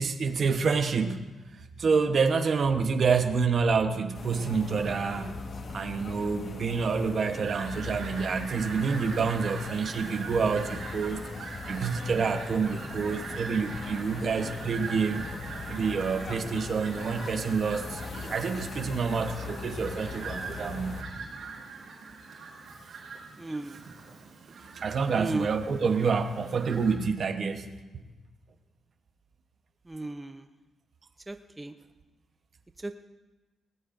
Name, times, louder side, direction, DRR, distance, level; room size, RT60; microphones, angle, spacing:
voice 1, 0.0-5.4 5.7-11.2 11.7-15.2 15.7-21.0 24.7-27.7, right 5 dB, 55° right, 7 dB, 1.0 m, -28 dB
sound 1, 4.1-21.0, left 3 dB, 55° left, 1.6 m, -40 dB
Fowl, 7.5-26.9, right 4 dB, 80° right, 4.0 m, -42 dB
voice 2, 23.4-23.8 25.1-25.5 29.9-30.4 31.3-31.7 32.8-33.0, right 2 dB, 15° right, 7 dB, 0.7 m, -35 dB
19.0 x 18.5 x 2.6 m, 1.2 s
cardioid pair, 80°, 0 cm